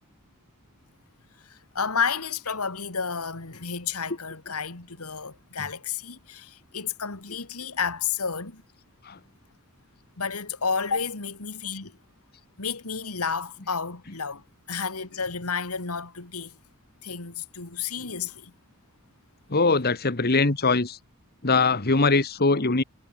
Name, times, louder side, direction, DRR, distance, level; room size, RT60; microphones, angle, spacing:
voice 1, 1.4-8.6 10.2-12.0 12.6-16.6 17.0-18.5, left 6 dB, 80° left, 2.5 m, -31 dB
voice 2, 19.5-21.0 21.4-22.8, left 3 dB, 45° left, 1.6 m, -22 dB
head